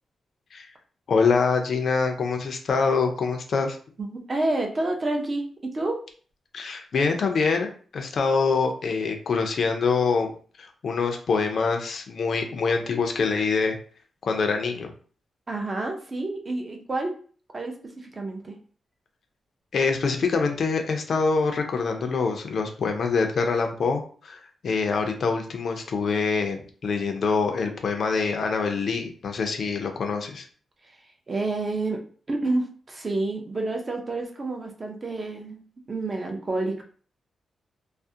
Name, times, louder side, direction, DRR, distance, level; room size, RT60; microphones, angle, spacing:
voice 1, 1.1-3.8 6.5-10.3 10.6-13.8 14.2-14.9 19.7-30.5, left 4 dB, 55° left, 4 dB, 0.4 m, -25 dB
voice 2, 4.0-6.0 15.5-17.1 17.5-18.6 30.8-31.0 31.3-32.0 32.3-36.8, right 2 dB, 30° right, 2 dB, 0.4 m, -29 dB
2.4 x 2.0 x 2.6 m, 0.43 s
wide cardioid pair, 130°, 0 cm